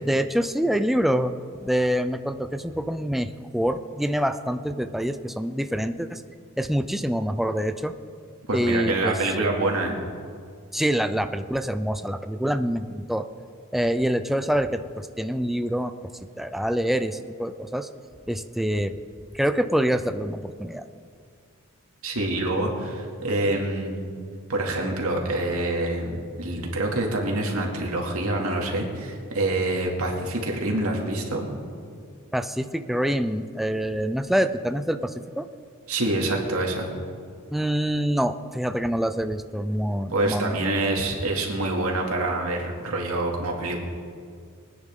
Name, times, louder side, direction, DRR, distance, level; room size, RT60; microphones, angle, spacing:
voice 1, 0.0-6.2 6.6-8.0 8.5-9.5 10.7-13.3 13.7-15.9 16.4-17.9 18.3-19.0 19.3-20.9 32.3-35.5 37.5-40.6, equal, ahead, 9 dB, 0.4 m, -26 dB
voice 2, 8.5-9.9 22.0-24.0 24.5-31.5 35.9-36.9 40.1-43.8, right 2 dB, 80° right, 0 dB, 2.4 m, -26 dB
23.0 x 9.9 x 3.6 m, 2.2 s
head